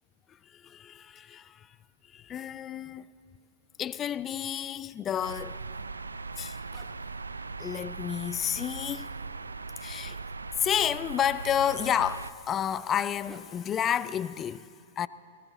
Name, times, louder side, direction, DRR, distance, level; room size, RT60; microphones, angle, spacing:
voice 1, 0.4-1.8 2.0-3.1 3.8-5.6 6.4-6.6 7.6-9.1 9.8-10.2 10.6-15.1, left 9 dB, 25° left, 0.3 m, -30 dB
Zipper (clothing), 5.1-5.3 6.7-7.1 8.5-8.7 10.0-10.3 11.6-11.9 13.2-14.1, right 3 dB, 15° right, 1.0 m, -54 dB
sound 1, 5.2-12.3, right 4 dB, 90° right, 0.5 m, -39 dB
19.0 x 19.0 x 4.0 m
hypercardioid pair, 110°, 0 cm